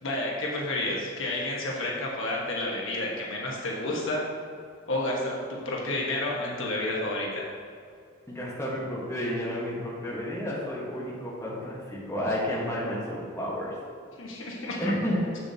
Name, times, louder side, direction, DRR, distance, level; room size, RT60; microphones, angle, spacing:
voice 1, 0.0-4.2 4.9-7.4 14.2-14.9, left 1 dB, 65° left, -3 dB, 1.2 m, -30 dB
voice 2, 8.3-13.7 14.8-15.2, equal, 15° left, -6 dB, 1.3 m, -31 dB
7.2 x 6.9 x 2.8 m, 2.2 s
head